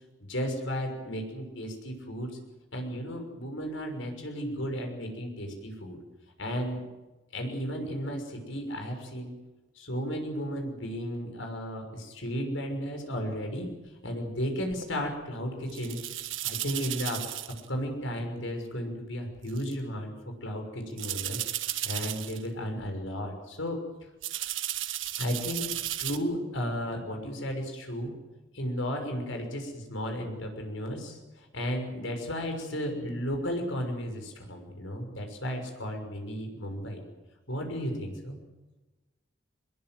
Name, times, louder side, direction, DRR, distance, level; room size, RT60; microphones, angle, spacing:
voice 1, 0.2-2.3 2.7-6.0 6.4-6.8 7.3-9.3 9.7-13.8 14.0-16.0 16.4-17.2 17.7-20.1 20.4-21.4 21.8-23.8 25.2-25.6 26.0-28.1 28.5-37.0 37.5-38.4, equal, 85° left, 4 dB, 6.3 m, -34 dB
sound 1, 14.7-14.9 15.7-17.7 18.1-18.2 19.5-19.7 21.0-22.5 22.8-23.1 24.2-26.2, right 13 dB, 90° right, 1.5 m, -34 dB
22.5 x 21.5 x 7.9 m, 1.1 s
head